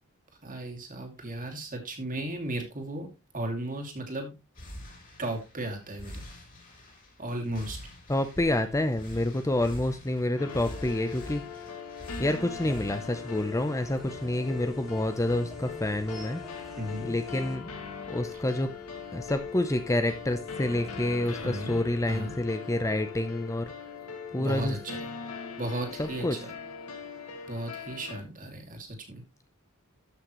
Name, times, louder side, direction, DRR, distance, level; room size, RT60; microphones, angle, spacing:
voice 1, 0.4-3.1 3.3-4.3 5.2-6.2 7.2-7.8 16.8-17.1 21.4-21.8 22.1-22.4 24.4-25.0 25.6-26.4 27.5-29.2, right 1 dB, 40° right, 2.5 m, -35 dB
sound 1, 4.5-22.5, equal, 40° left, 4.2 m, -48 dB
voice 2, 8.1-11.4 12.2-16.4 17.0-17.7 18.1-18.7 19.1-23.7 24.3-24.8 26.0-26.4, left 1 dB, 15° left, 0.7 m, -28 dB
sound 2, 10.4-28.2, left 5 dB, 85° left, 2.4 m, -41 dB
sound 3, 12.4-17.6, equal, ahead, 2.0 m, -50 dB
13.0 x 6.3 x 3.1 m
head